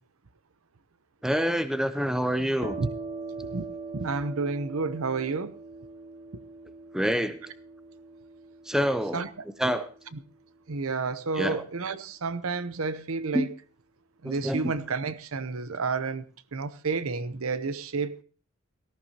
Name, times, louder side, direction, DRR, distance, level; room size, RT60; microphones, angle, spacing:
voice 1, 1.2-2.8 6.9-7.4 8.7-9.2 9.6-9.9 11.4-11.6 13.3-13.5 14.2-14.7, equal, 5° right, 0.7 m, -26 dB
sound 1, 2.6-10.1, right 3 dB, 50° right, 2.8 m, -41 dB
voice 2, 3.9-5.6 9.1-9.4 10.1-10.2 10.7-13.5 14.2-16.2 16.5-18.2, right 4 dB, 75° right, 0.8 m, -30 dB
18.0 x 14.0 x 2.9 m
head